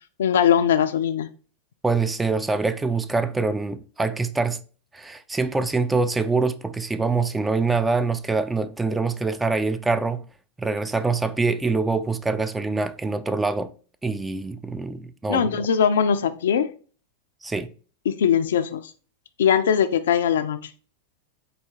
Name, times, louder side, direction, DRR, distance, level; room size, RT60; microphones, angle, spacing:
voice 1, 0.2-1.3 15.3-16.7 18.1-18.8 19.4-20.7, left 8 dB, 60° left, 0.4 m, -20 dB
voice 2, 1.8-4.6 4.9-10.2 10.6-13.7 14.0-15.7 17.4-17.7, right 4 dB, 10° right, 0.3 m, -24 dB
4.1 x 2.7 x 3.5 m
figure-of-eight pair, 90°, 0 cm